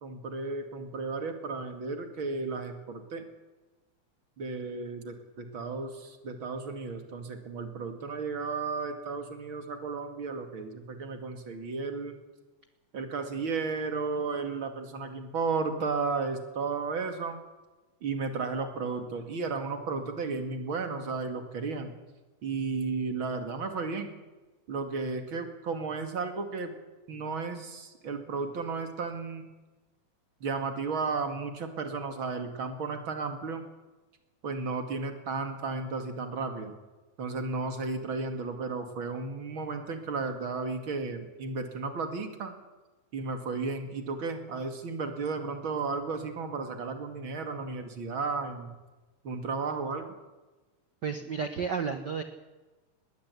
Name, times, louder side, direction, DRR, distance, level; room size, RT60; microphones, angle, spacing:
voice 1, 0.0-3.3 4.4-12.2 12.9-17.4 18.0-21.9 22.4-24.1 24.7-26.7 27.1-29.5 30.4-33.6 34.4-36.7 37.2-42.5 43.1-48.7 49.2-50.2, right 4 dB, 40° right, 6 dB, 2.6 m, -34 dB
voice 2, 51.0-52.2, right 6 dB, 80° right, 8 dB, 0.9 m, -32 dB
20.5 x 18.0 x 8.3 m, 1.2 s
omnidirectional pair, 3.7 m